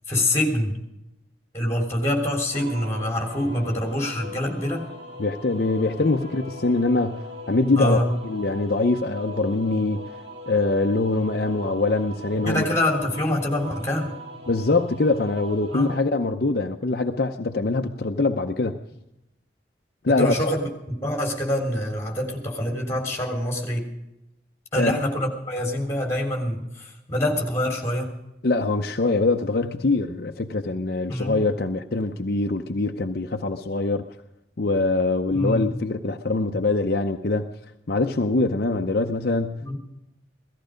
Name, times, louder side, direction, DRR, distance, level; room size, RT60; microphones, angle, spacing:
voice 1, 0.1-0.8 1.5-4.8 7.8-8.1 12.4-14.2 15.7-15.9 20.1-23.9 24.7-28.1 31.1-31.4 35.3-35.7 39.6-39.8, left 1 dB, 15° left, 2 dB, 3.5 m, -25 dB
sound 1, 2.5-16.0, equal, 60° right, 3.6 m, -40 dB
voice 2, 5.2-10.0 10.5-12.7 14.5-18.8 20.0-20.3 24.8-25.0 28.4-34.1 34.6-37.5 37.9-39.8, left 3 dB, 55° left, 5 dB, 0.7 m, -23 dB
17.0 x 14.5 x 5.1 m, 0.90 s
head